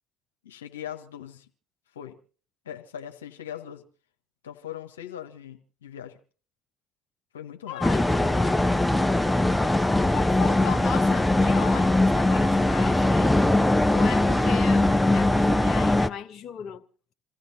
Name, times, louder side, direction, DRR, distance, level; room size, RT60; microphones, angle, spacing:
voice 1, 0.4-1.4 1.9-2.2 2.6-3.8 4.4-6.2 7.3-8.6, left 10 dB, 90° left, 1.0 m, -41 dB
voice 2, 7.7-8.4 9.8-13.3 13.9-16.8, left 9 dB, 50° left, 0.9 m, -36 dB
sound 1, 7.8-16.1, left 1 dB, 10° left, 0.7 m, -21 dB
27.5 x 15.0 x 2.7 m
hypercardioid pair, 65°, 0 cm